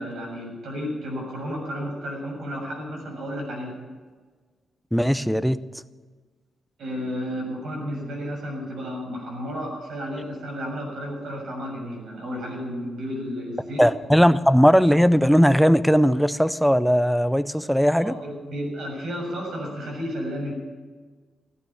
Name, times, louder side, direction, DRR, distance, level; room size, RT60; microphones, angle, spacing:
voice 1, 0.0-3.7 6.8-13.8 18.0-20.5, equal, 65° right, -1 dB, 6.8 m, -32 dB
voice 2, 4.9-5.6 13.8-18.1, equal, ahead, 13 dB, 0.4 m, -18 dB
15.5 x 9.7 x 9.6 m, 1.4 s
wide cardioid pair, 180°, 0 cm